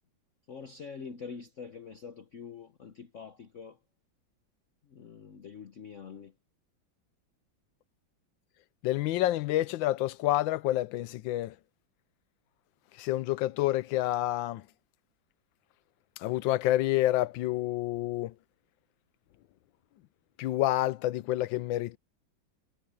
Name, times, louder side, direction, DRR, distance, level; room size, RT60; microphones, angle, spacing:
voice 1, 0.5-3.8 4.9-6.3, left 6 dB, 50° left, 1.0 m, -45 dB
voice 2, 8.8-11.5 13.0-14.6 16.2-18.3 20.4-22.0, left 15 dB, 75° left, 1.3 m, -28 dB
omnidirectional pair, 2.2 m